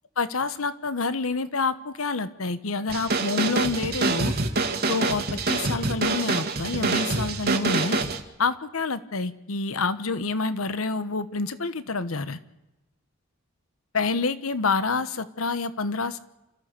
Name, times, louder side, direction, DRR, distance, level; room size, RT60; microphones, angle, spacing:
voice 1, 0.2-4.3 4.9-8.0 8.4-12.4 13.9-16.2, left 4 dB, 85° left, 14 dB, 1.1 m, -27 dB
sound 1, 2.9-8.2, right 3 dB, 50° right, 1.8 m, -26 dB
29.0 x 13.5 x 7.0 m, 1.0 s
head